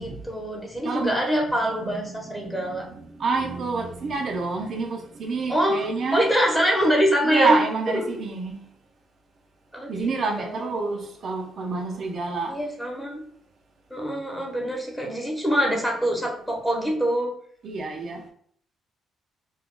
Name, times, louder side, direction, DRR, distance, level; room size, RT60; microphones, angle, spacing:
voice 1, 0.0-2.9 5.5-5.8 6.1-7.6 7.9-8.1 9.7-10.1 10.4-10.9 12.5-13.2 13.9-17.3, equal, 5° left, 1.0 m, -24 dB
voice 2, 1.8-6.2 7.2-8.6 9.9-12.6 17.6-18.3, right 3 dB, 55° right, 0.5 m, -28 dB
2.4 x 2.3 x 3.6 m
cardioid pair, 90°, 0 cm